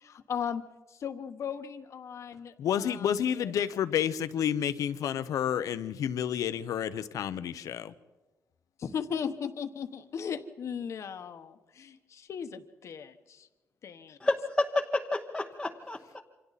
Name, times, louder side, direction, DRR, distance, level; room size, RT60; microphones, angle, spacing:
voice 1, 0.0-3.5 8.8-13.5 13.8-14.2, left 7 dB, 60° left, 9 dB, 1.2 m, -37 dB
voice 2, 2.6-7.9, left 9 dB, 85° left, 12 dB, 0.9 m, -30 dB
voice 3, 14.2-16.2, left 2 dB, 10° left, 0 dB, 1.0 m, -30 dB
28.0 x 26.0 x 4.2 m, 1.1 s
cardioid pair, 135°, 6 cm